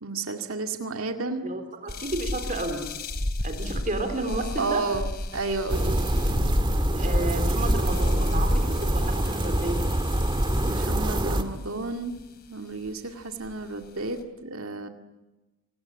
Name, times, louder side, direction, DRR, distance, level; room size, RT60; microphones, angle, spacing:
voice 1, 0.0-1.5 4.6-6.1 10.6-12.2 12.5-14.9, right 3 dB, 70° right, 5 dB, 2.1 m, -32 dB
voice 2, 1.4-2.8 3.4-4.8 5.9-6.2 7.0-9.8, right 2 dB, 35° right, 6 dB, 3.6 m, -32 dB
sound 1, 1.9-11.0 11.8-12.2 12.9-13.0 13.4-14.2, left 1 dB, 50° left, 3.0 m, -31 dB
sound 2, 5.7-11.4, right 1 dB, 20° right, 1.7 m, -25 dB
28.5 x 20.0 x 9.9 m, 1.1 s
head